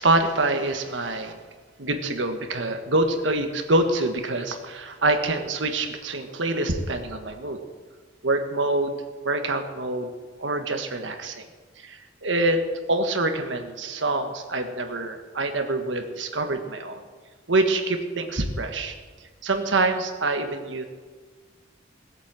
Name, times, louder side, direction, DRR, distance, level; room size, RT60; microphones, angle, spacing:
voice 1, 0.0-1.4 1.8-7.6 8.2-9.0 9.2-11.4 11.8-12.6 12.9-17.0 17.5-18.9 19.4-20.8, right 2 dB, 70° right, 6 dB, 1.5 m, -25 dB
18.5 x 8.4 x 7.6 m, 1.4 s
head